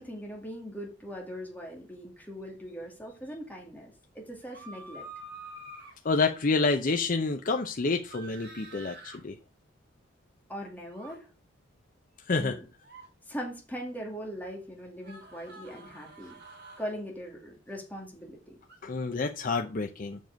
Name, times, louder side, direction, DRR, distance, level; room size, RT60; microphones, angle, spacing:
voice 1, 0.0-5.1 10.5-11.3 12.3-12.7 13.3-16.4 16.8-18.6, equal, 10° left, 2.3 m, -40 dB
sound 1, 4.4-5.9 8.1-9.2 10.9-11.2 12.7-13.1 15.0-16.9 18.7-18.8, right 2 dB, 60° right, 3.7 m, -47 dB
voice 2, 6.0-9.3 12.3-12.6 18.8-20.2, left 3 dB, 45° left, 0.7 m, -28 dB
7.3 x 6.1 x 5.2 m
head